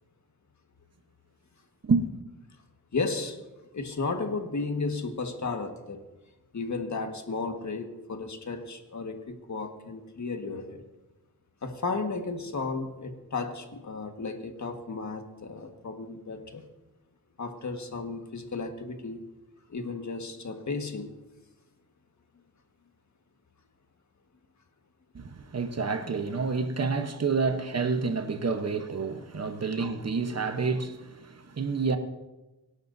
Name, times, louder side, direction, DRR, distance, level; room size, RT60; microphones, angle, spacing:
voice 1, 2.9-3.4 3.7-6.0 6.5-10.8 11.6-16.7 17.4-19.2 19.7-21.1, left 4 dB, 45° left, 1.7 m, -34 dB
voice 2, 25.1-32.0, right 4 dB, 40° right, 1.1 m, -28 dB
25.0 x 11.5 x 2.7 m
cardioid pair, 90°, 38 cm